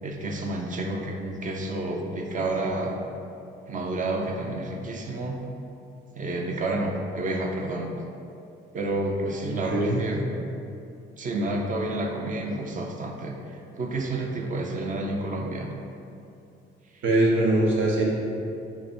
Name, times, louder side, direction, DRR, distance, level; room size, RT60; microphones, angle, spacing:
voice 1, 0.0-3.0 3.7-5.4 6.2-7.9 8.7-10.4 11.2-13.4 13.8-15.7 16.9-17.0, right 2 dB, 40° right, 1 dB, 0.5 m, -30 dB
voice 2, 9.4-10.0 17.0-18.1, right 2 dB, 75° right, -3 dB, 0.8 m, -22 dB
3.2 x 2.6 x 4.2 m, 2.6 s
cardioid pair, 90°, 20 cm